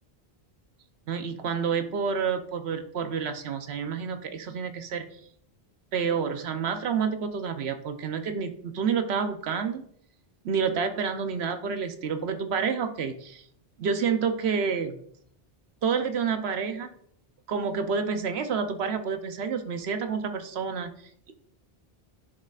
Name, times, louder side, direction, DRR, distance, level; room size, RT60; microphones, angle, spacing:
voice 1, 1.1-5.0 5.9-9.9 10.4-13.4 13.8-15.0 15.8-16.9 17.5-20.9 21.3-21.4, right 6 dB, 85° right, 8 dB, 1.0 m, -29 dB
9.9 x 6.4 x 2.4 m, 0.66 s
omnidirectional pair, 1.0 m